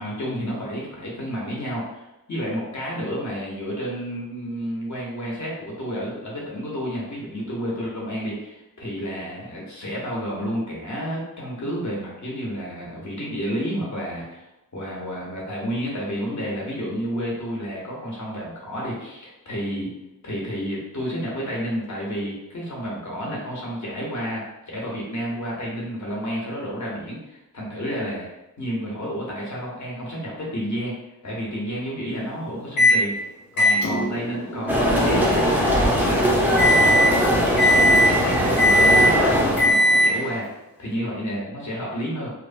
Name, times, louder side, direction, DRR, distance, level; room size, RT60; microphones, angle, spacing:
voice 1, 0.0-14.5 14.7-19.9 20.2-28.3 28.6-30.9 31.2-33.1 33.5-38.6 38.9-40.5 40.8-42.3, equal, 50° left, -4 dB, 0.9 m, -30 dB
Microwave oven, 32.8-33.0 33.6-40.4, left 1 dB, 70° left, 0.6 m, -20 dB
sound 1, 34.7-39.7, equal, 5° right, 0.5 m, -20 dB
3.0 x 2.1 x 2.6 m, 0.94 s
wide cardioid pair, 70°, 37 cm